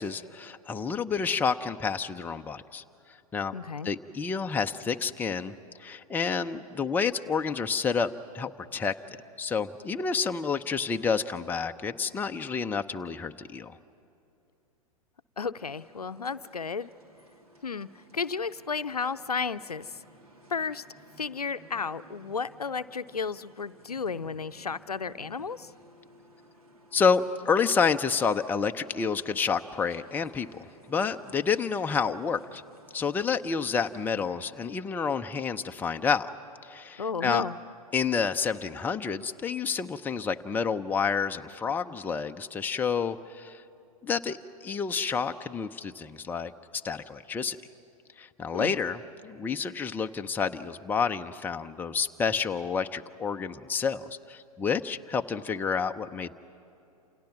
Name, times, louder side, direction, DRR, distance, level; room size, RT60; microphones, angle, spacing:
voice 1, 0.0-2.8 3.3-3.5 3.8-5.5 5.8-8.1 8.3-13.8 26.9-32.6 32.9-36.3 36.6-37.4 37.9-43.6 44.0-44.4 44.6-46.5 46.8-47.6 48.2-56.3, left 5 dB, 10° left, 6 dB, 0.6 m, -29 dB
voice 2, 3.5-3.9 15.4-16.9 17.6-19.9 20.5-20.8 21.2-25.7 37.0-37.6 48.5-48.7, left 5 dB, 85° left, 13 dB, 0.6 m, -33 dB
sound 1, 15.5-34.3, right 1 dB, 75° right, 3.1 m, -56 dB
28.5 x 28.0 x 6.0 m, 2.7 s
figure-of-eight pair, 105°, 19 cm